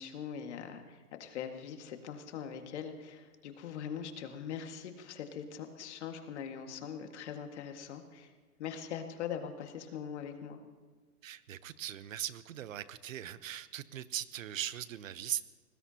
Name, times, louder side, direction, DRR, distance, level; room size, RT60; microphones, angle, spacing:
voice 1, 0.0-8.3 8.6-10.6, left 8 dB, 50° left, 5 dB, 2.0 m, -42 dB
voice 2, 11.2-15.4, right 11 dB, 60° right, 15 dB, 1.0 m, -39 dB
25.0 x 19.5 x 2.9 m, 1.4 s
hypercardioid pair, 150°, 45 cm